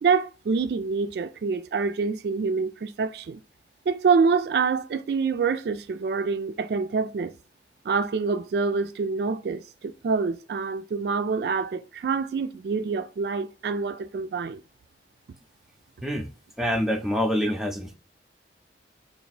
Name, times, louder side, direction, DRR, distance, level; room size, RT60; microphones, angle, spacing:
voice 1, 0.0-3.4 3.9-7.3 7.9-14.6, right 5 dB, 65° right, 0.3 m, -26 dB
voice 2, 16.6-18.0, equal, ahead, 0.5 m, -26 dB
3.4 x 2.5 x 3.9 m
head